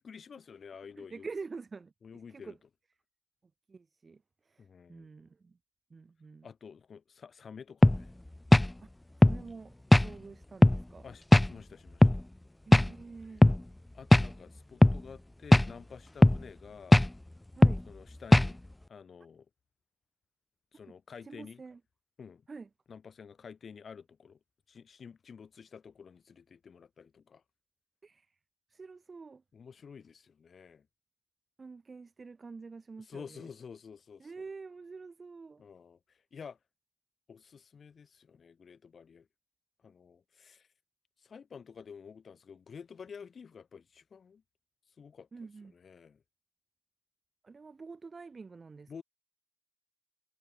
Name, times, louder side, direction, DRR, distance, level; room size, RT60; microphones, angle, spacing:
voice 1, 0.0-1.3 2.0-2.5 4.6-5.1 6.4-8.1 11.0-12.2 13.9-17.0 17.9-18.6 18.9-19.4 20.7-21.6 22.2-22.4 22.9-24.4 24.7-27.4 29.5-30.8 33.1-34.3 35.6-36.0 36.3-36.6 37.3-39.3 39.8-40.7 41.2-44.4 45.0-45.3 45.7-46.2 48.9-49.0, left 6 dB, 45° left, 3.4 m, -50 dB
voice 2, 1.0-2.6 3.7-5.6 5.9-6.5 9.2-11.1 12.7-13.4 17.6-17.8 20.9-21.0 21.2-21.8 22.5-22.7 28.0-28.4 28.7-29.4 31.6-33.5 34.2-35.6 45.3-45.7 47.4-49.0, right 4 dB, 30° right, 6.4 m, -47 dB
sound 1, 7.8-8.0 8.5-8.7 9.2-9.4 9.9-10.1 10.6-10.8 11.3-11.5 12.0-12.2 12.7-12.9 13.4-13.6 14.1-14.3 14.8-15.0 15.5-15.7 16.2-16.4 16.9-17.1 17.6-17.8 18.3-18.5, left 1 dB, 10° left, 0.4 m, -19 dB
wide cardioid pair, 150°, 0 cm